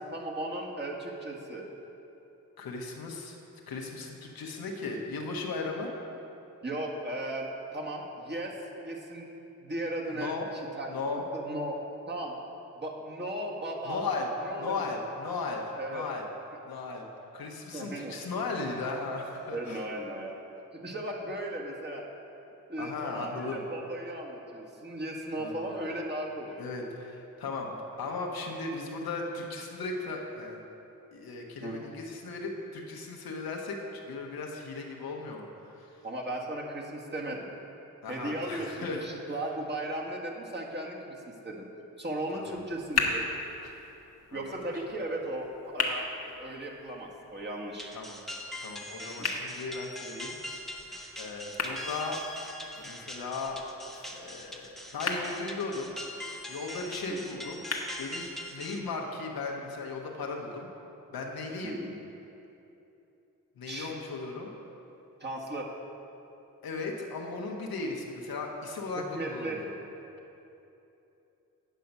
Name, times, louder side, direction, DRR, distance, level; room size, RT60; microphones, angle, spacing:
voice 1, 0.1-1.6 6.6-8.6 8.8-9.3 9.6-11.8 12.0-12.4 12.7-14.0 14.4-14.7 15.8-16.1 17.7-18.1 19.5-20.3 20.7-22.0 22.7-26.8 31.6-31.8 36.0-37.5 38.1-41.7 42.0-43.2 44.3-46.1 46.4-47.9 49.2-49.3 57.1-57.2 61.6-61.9 63.6-64.0 65.2-65.7 69.1-69.6, right 1 dB, 30° right, -2 dB, 1.6 m, -36 dB
voice 2, 2.6-3.4 3.7-5.9 10.1-10.4 10.9-11.2 13.9-14.3 14.6-16.3 16.6-17.0 17.3-19.8 22.8-23.6 25.4-25.7 26.6-30.6 31.1-36.0 38.0-39.1 42.3-42.6 44.3-44.5 47.9-48.2 48.6-50.7 51.2-52.2 52.9-53.6 54.1-55.9 56.5-57.6 58.0-60.7 61.1-61.8 63.6-64.5 66.6-69.7, left 3 dB, 75° left, 0 dB, 1.1 m, -36 dB
sound 1, 42.5-58.5, left 3 dB, 45° left, 1.2 m, -38 dB
sound 2, 47.8-58.8, left 1 dB, ahead, 1.0 m, -42 dB
9.2 x 5.7 x 5.4 m, 2.9 s
supercardioid pair, 45°, 36 cm